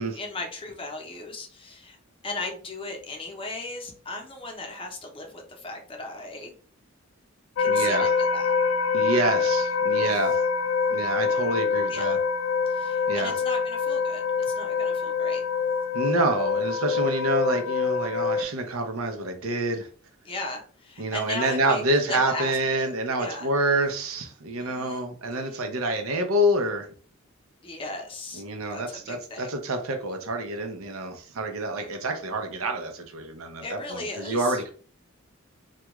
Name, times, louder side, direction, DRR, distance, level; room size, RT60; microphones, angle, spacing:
voice 1, 0.1-2.0 2.2-6.5 7.6-8.5 11.9-12.2 12.7-15.4 20.2-22.9 23.2-23.5 24.6-25.1 25.3-25.6 27.6-28.4 28.7-29.6 31.8-31.9 33.6-34.6, left 2 dB, 25° left, 0.6 m, -37 dB
sound 1, 7.6-18.4, left 5 dB, 70° left, 0.3 m, -25 dB
voice 2, 7.7-8.1 8.9-10.4 10.9-12.2 13.1-13.3 15.9-19.9 21.0-26.9 28.3-34.7, right 1 dB, 90° right, 0.6 m, -27 dB
2.3 x 2.2 x 2.9 m
head